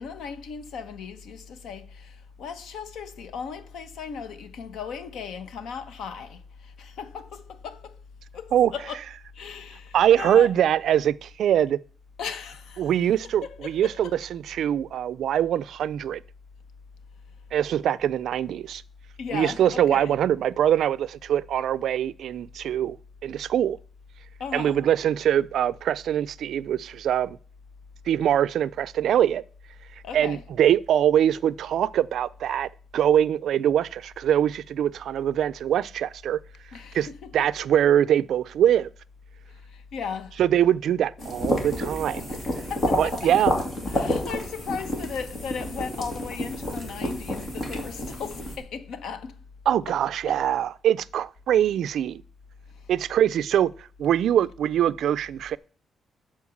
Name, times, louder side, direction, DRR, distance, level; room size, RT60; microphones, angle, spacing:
voice 1, 0.0-8.0 8.3-9.0 9.3-10.5 12.2-12.9 13.4-14.2 19.2-20.1 24.4-24.8 30.0-30.4 36.7-37.5 39.5-40.4 42.5-43.2 43.9-49.4 50.3-50.4 52.7-52.9, left 6 dB, 85° left, 1.1 m, -37 dB
voice 2, 9.9-11.8 12.8-16.2 17.5-18.8 19.3-23.0 23.2-23.8 24.5-27.4 28.1-29.4 30.1-36.4 36.9-37.1 37.3-38.9 40.4-42.2 43.0-43.5 49.7-52.2 52.9-53.7 54.0-55.6, right 10 dB, 65° right, 0.4 m, -23 dB
sound 1, 41.2-48.6, left 1 dB, 30° left, 2.2 m, -29 dB
12.0 x 4.5 x 7.2 m
wide cardioid pair, 180°, 0 cm